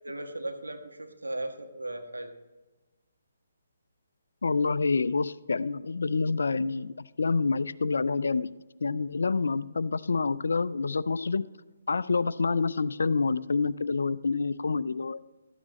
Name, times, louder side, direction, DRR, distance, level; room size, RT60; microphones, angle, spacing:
voice 1, 0.0-2.3, right 1 dB, 85° right, 4 dB, 1.4 m, -37 dB
voice 2, 4.4-8.5 8.8-11.4 11.9-15.2, left 4 dB, 70° left, 17 dB, 0.4 m, -27 dB
13.0 x 9.5 x 3.1 m, 1.2 s
figure-of-eight pair, 140°, 0 cm